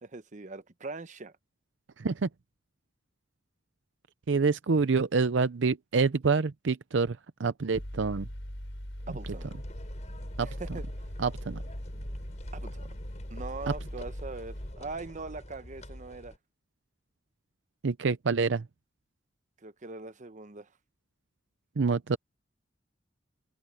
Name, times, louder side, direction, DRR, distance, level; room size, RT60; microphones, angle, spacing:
voice 1, 0.0-1.3 9.1-9.5 10.4-10.9 12.5-12.9 13.3-16.3 19.6-20.7, right 3 dB, 40° right, 1.0 m, -41 dB
voice 2, 2.0-2.3 4.3-8.3 10.4-10.5 11.2-11.6 17.8-18.7 21.8-22.2, right 4 dB, 75° right, 0.6 m, -27 dB
Mechanical fan, 7.7-14.7, equal, 75° left, 5.6 m, -40 dB
sound 1, 9.0-16.4, equal, 40° left, 7.9 m, -46 dB
head